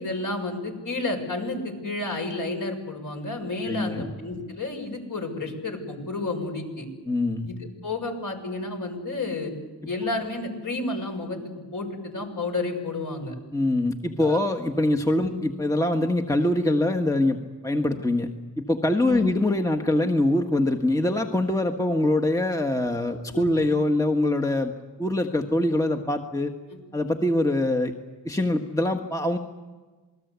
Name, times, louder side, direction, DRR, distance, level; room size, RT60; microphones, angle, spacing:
voice 1, 0.0-6.9 7.4-7.5 7.8-9.5 9.8-11.4 11.7-13.4 14.2-14.4 15.2-15.3 19.0-19.3 23.3-23.5 26.7-26.8, left 2 dB, 50° left, 4 dB, 6.5 m, -31 dB
voice 2, 3.7-4.1 7.1-7.5 13.5-18.3 18.6-24.7 25.0-26.5 26.9-27.9 28.2-29.4, left 1 dB, 10° left, 4 dB, 1.6 m, -24 dB
27.5 x 20.5 x 8.3 m, 1.3 s
cardioid pair, 80°, 41 cm